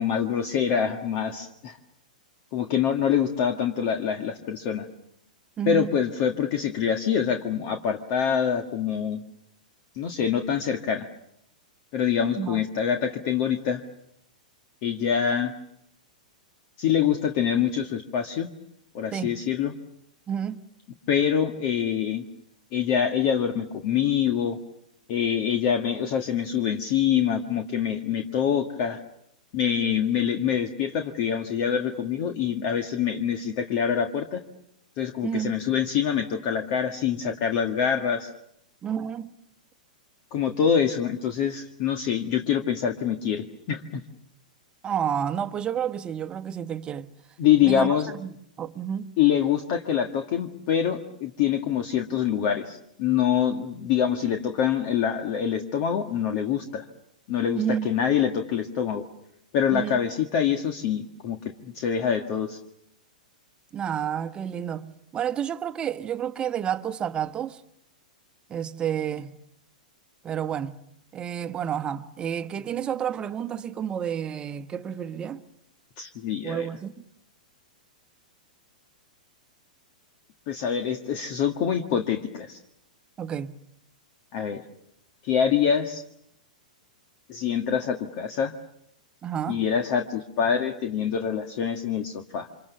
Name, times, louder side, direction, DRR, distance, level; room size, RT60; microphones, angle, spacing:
voice 1, 0.0-1.8 2.5-4.9 5.7-9.2 9.9-11.1 11.9-13.8 14.8-15.6 16.8-18.5 18.9-19.7 21.1-22.2 22.7-24.6 25.1-29.0 29.5-34.4 35.0-38.3 40.3-44.0 47.4-48.1 49.2-56.9 57.3-59.0 59.5-62.6 76.0-76.7 80.5-82.6 84.3-84.6 85.2-86.0 87.3-88.5 89.5-92.5, left 8 dB, 45° left, 1.8 m, -25 dB
voice 2, 5.6-5.9 12.4-12.6 19.1-19.3 20.3-20.6 35.2-35.6 38.8-39.3 44.8-47.1 47.6-47.9 48.2-48.3 48.6-49.1 57.5-57.9 59.7-60.0 63.7-67.6 68.5-69.4 70.2-70.8 71.1-75.4 76.4-77.1 83.2-83.6 89.2-89.6, right 9 dB, 20° right, 1.3 m, -30 dB
29.5 x 26.0 x 7.0 m
figure-of-eight pair, 105°, 4 cm